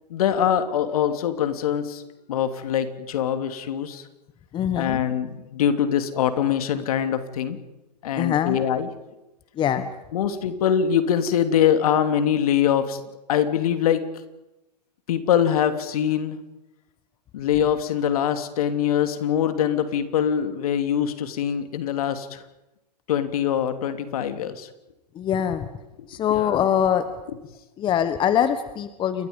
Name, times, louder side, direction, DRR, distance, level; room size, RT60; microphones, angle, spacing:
voice 1, 0.1-2.0 2.3-4.1 4.7-7.6 8.0-8.9 10.1-13.0 13.3-14.0 15.1-16.4 17.3-22.4 23.1-24.7 26.0-26.6, left 9 dB, 60° left, 9 dB, 2.9 m, -23 dB
voice 2, 4.5-5.1 8.2-8.6 9.6-9.9 25.1-25.7 26.1-27.0 27.8-29.3, left 9 dB, 25° left, 12 dB, 1.4 m, -23 dB
29.0 x 23.0 x 5.4 m, 0.97 s
hypercardioid pair, 120°, 21 cm